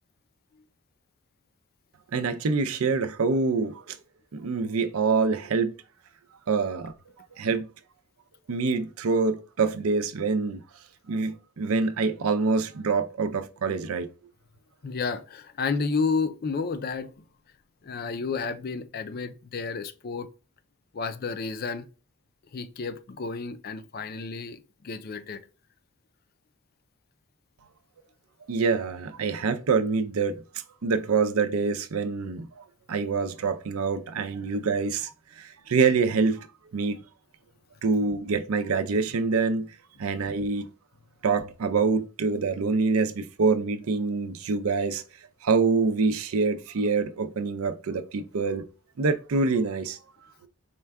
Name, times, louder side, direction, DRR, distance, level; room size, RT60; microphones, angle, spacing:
voice 1, 2.1-4.0 4.3-5.8 6.5-6.9 7.4-7.7 8.5-10.6 11.1-14.1 28.5-30.4 30.8-36.5 36.7-37.0 37.8-40.7 41.2-45.0 45.4-48.6 49.0-50.0, right 4 dB, 75° right, 0.5 m, -26 dB
voice 2, 14.8-17.1 17.8-20.3 20.9-21.9 22.5-25.4, left 4 dB, 45° left, 0.4 m, -31 dB
4.4 x 2.2 x 3.4 m
head